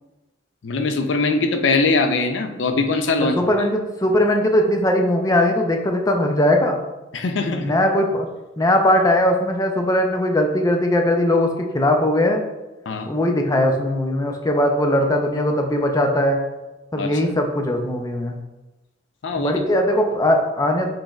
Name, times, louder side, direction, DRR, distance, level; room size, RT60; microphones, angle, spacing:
voice 1, 0.6-3.4 7.1-7.7 12.9-13.1 17.0-17.4 19.2-19.6, left 3 dB, 75° left, 6 dB, 0.5 m, -22 dB
voice 2, 3.2-6.8 7.6-8.3 8.6-11.5 11.7-12.4 13.1-16.4 16.9-18.4 19.4-20.9, left 1 dB, 20° left, 3 dB, 0.5 m, -19 dB
6.2 x 3.2 x 2.3 m, 1.1 s
head